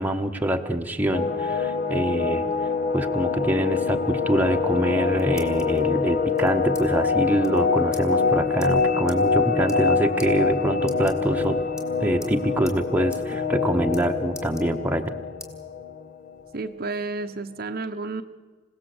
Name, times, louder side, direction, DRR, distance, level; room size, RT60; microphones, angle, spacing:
voice 1, 0.0-2.4 2.9-11.6 12.0-15.1, right 1 dB, 10° right, 3 dB, 1.2 m, -25 dB
sound 1, 1.1-16.3, left 4 dB, 45° left, 1.2 m, -25 dB
sound 2, 4.9-5.8 6.4-6.9 7.1-7.2 7.4-7.6 7.9-8.1 8.6-8.7 9.1-9.2 9.6-9.9 10.2-10.3 10.8-11.5 11.8-12.4 12.7-12.8 13.1-13.2 13.5-14.0 14.3-15.1 15.4-15.5 16.0-16.9, left 2 dB, 15° left, 2.9 m, -44 dB
voice 2, 16.5-18.2, right 3 dB, 50° right, 7 dB, 0.9 m, -31 dB
27.5 x 17.5 x 7.9 m, 1.4 s
head